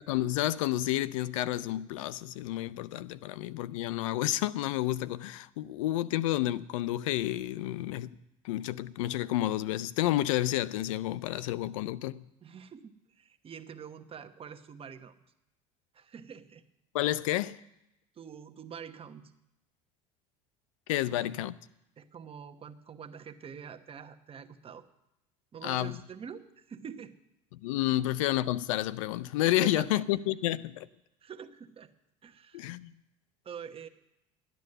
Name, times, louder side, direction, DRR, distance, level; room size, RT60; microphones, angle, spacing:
voice 1, 0.1-8.1 8.4-12.3 16.9-17.6 20.9-21.6 25.6-26.0 27.5-30.9 32.5-32.9, left 15 dB, 90° left, 0.4 m, -30 dB
voice 2, 12.4-15.1 15.9-16.6 18.1-19.3 21.1-21.3 22.0-24.8 25.5-27.2 27.9-28.0 29.6-30.0 31.2-31.9 32.2-32.8 33.4-33.9, right 7 dB, 35° right, 1.0 m, -46 dB
12.5 x 9.2 x 6.6 m
supercardioid pair, 85°, 16 cm